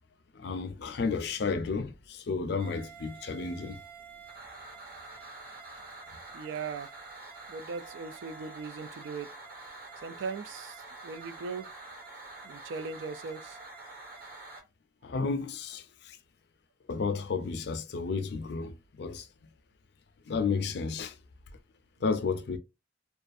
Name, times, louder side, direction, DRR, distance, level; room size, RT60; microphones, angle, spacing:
voice 1, 0.3-3.8 15.0-16.2 16.9-19.3 20.3-21.2 22.0-22.6, left 4 dB, 55° left, 0.4 m, -32 dB
sound 1, 2.6-14.6, right 3 dB, 45° right, 1.1 m, -47 dB
voice 2, 6.3-6.9 7.5-9.3 10.0-11.7 12.4-13.6, right 5 dB, 65° right, 0.3 m, -39 dB
2.4 x 2.3 x 2.5 m
head